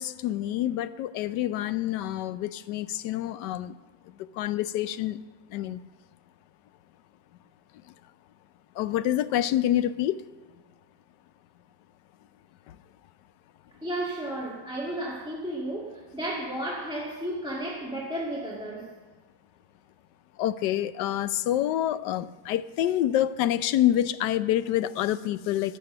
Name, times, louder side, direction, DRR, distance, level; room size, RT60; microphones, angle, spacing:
voice 1, 0.0-3.8 4.3-5.2 5.5-5.8 8.8-10.2 12.7-12.8 20.4-25.8, left 12 dB, 70° left, 1.1 m, -27 dB
voice 2, 13.8-18.9, right 1 dB, 5° right, 1.6 m, -33 dB
15.5 x 10.5 x 6.7 m
omnidirectional pair, 2.1 m